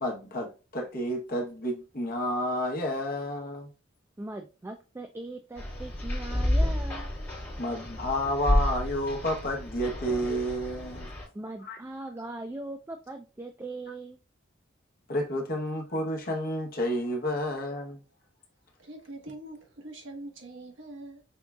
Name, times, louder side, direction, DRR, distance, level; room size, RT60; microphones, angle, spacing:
voice 1, 0.0-3.7 7.6-11.1 11.7-11.8 15.1-18.0, equal, 45° left, 1.0 m, -30 dB
voice 2, 4.2-7.1 11.3-14.2, right 2 dB, 15° right, 0.3 m, -40 dB
sound 1, 5.6-11.3, left 1 dB, 10° left, 2.2 m, -30 dB
voice 3, 18.8-21.2, right 1 dB, 65° right, 1.1 m, -43 dB
5.3 x 3.5 x 2.3 m
head